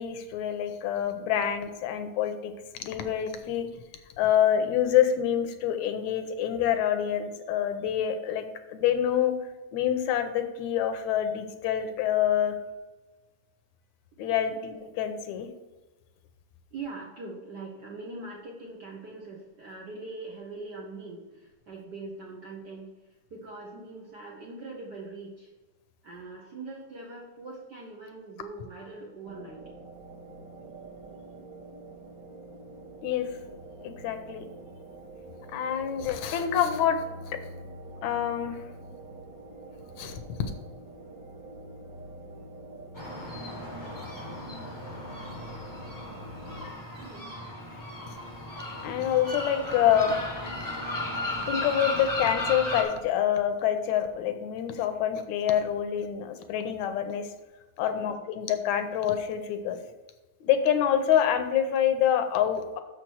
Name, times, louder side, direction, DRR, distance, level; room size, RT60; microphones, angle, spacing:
voice 1, 0.0-3.7 4.2-9.4 9.7-12.6 14.2-15.5 33.0-33.3 33.8-34.5 35.5-37.4 38.0-38.6 40.0-40.5 48.8-50.2 51.4-57.3 57.8-59.8 60.4-62.8, left 9 dB, 80° left, 8 dB, 2.0 m, -26 dB
voice 2, 16.7-22.9 23.3-25.5 26.0-29.6 47.0-47.3 57.9-58.2, right 3 dB, 70° right, -3 dB, 1.0 m, -42 dB
sound 1, 29.2-46.7, right 1 dB, 45° right, 1.2 m, -45 dB
sound 2, 43.0-52.8, left 2 dB, 30° left, 0.3 m, -35 dB
6.6 x 5.9 x 6.3 m, 1.2 s
omnidirectional pair, 3.4 m